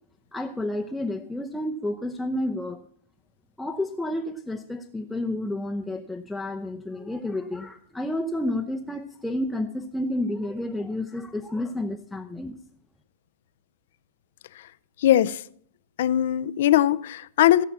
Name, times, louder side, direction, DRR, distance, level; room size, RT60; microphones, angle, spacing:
voice 1, 0.3-2.8 3.6-12.6, left 1 dB, 5° left, 0.7 m, -30 dB
voice 2, 15.0-15.4 16.0-17.6, left 12 dB, 65° left, 0.5 m, -20 dB
16.5 x 5.7 x 7.4 m
hypercardioid pair, 140°, 0 cm